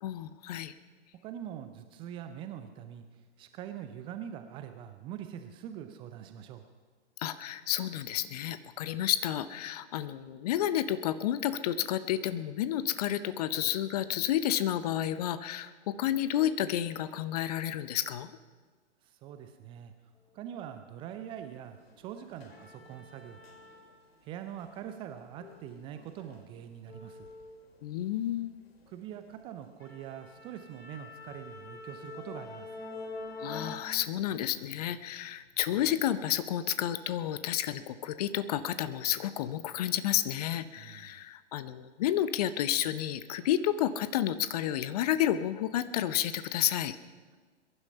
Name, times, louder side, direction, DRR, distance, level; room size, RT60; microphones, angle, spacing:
voice 1, 0.0-0.7 7.2-18.3 27.8-28.6 33.4-47.0, left 11 dB, 35° left, 14 dB, 0.7 m, -31 dB
voice 2, 1.2-6.6 19.0-19.9 20.3-23.4 24.2-27.3 28.9-32.7 40.8-41.1, right 10 dB, 15° right, 8 dB, 0.5 m, -43 dB
sound 1, 21.3-21.4 21.8-24.2 24.5-28.3 28.7-28.9 29.3-29.4 29.8-33.8, left 3 dB, 60° left, 2.5 m, -46 dB
22.0 x 11.0 x 5.6 m, 1.5 s
figure-of-eight pair, 110°, 35 cm